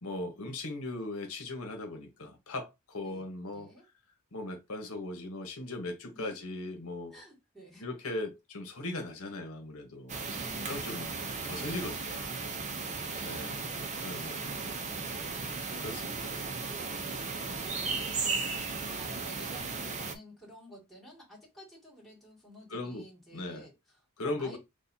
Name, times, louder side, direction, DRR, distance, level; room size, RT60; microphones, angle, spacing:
voice 1, 0.0-3.7 4.3-7.2 7.8-10.2 10.7-12.4 13.2-13.6 14.0-14.6 15.8-16.1 22.7-23.0 23.3-23.6 24.2-24.6, left 2 dB, 70° left, 1.1 m, -38 dB
voice 2, 3.0-3.8 6.1-6.4 7.1-7.8 10.2-11.7 14.9-18.6 18.9-24.6, equal, ahead, 2.3 m, -53 dB
sound 1, 10.1-20.2, right 4 dB, 35° right, 0.7 m, -36 dB
6.6 x 2.4 x 2.8 m
head